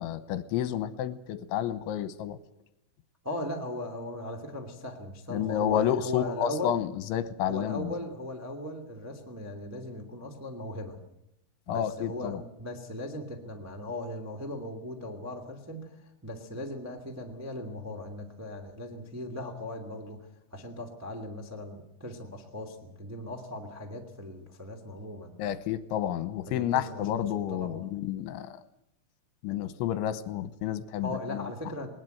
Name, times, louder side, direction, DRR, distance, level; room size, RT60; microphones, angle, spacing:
voice 1, 0.0-2.4 5.3-7.9 11.7-12.4 25.4-28.5 29.4-31.1, left 10 dB, 80° left, 13 dB, 3.3 m, -30 dB
voice 2, 3.2-6.7 7.5-11.0 11.7-25.3 26.4-27.8 31.0-31.9, left 1 dB, 20° right, 2 dB, 0.4 m, -38 dB
20.5 x 20.0 x 7.9 m, 0.83 s
omnidirectional pair, 5.5 m